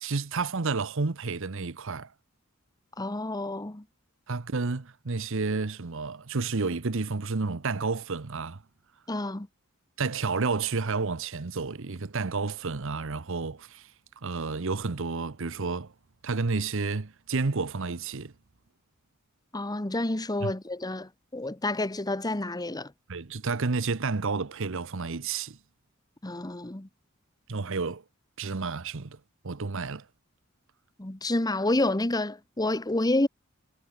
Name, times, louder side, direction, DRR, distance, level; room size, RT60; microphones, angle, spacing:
voice 1, 0.0-2.1 4.3-8.6 10.0-13.9 14.2-15.9 16.2-18.3 20.4-20.5 23.1-25.6 27.5-28.0 28.4-30.1, right 4 dB, 65° right, 0.9 m, -30 dB
voice 2, 3.0-3.8 9.1-9.5 19.5-22.9 26.2-26.9 31.0-33.3, left 2 dB, 20° left, 1.1 m, -29 dB
head